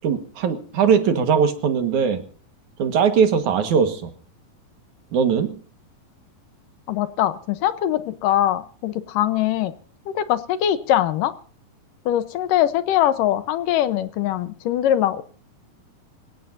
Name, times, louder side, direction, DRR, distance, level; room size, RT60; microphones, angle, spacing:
voice 1, 0.0-2.2 2.8-4.1 5.1-5.6, right 6 dB, 60° right, 8 dB, 2.8 m, -20 dB
voice 2, 6.9-9.7 10.1-11.3 12.1-15.2, left 12 dB, 75° left, 13 dB, 2.5 m, -22 dB
26.5 x 16.5 x 2.7 m, 0.42 s
omnidirectional pair, 4.0 m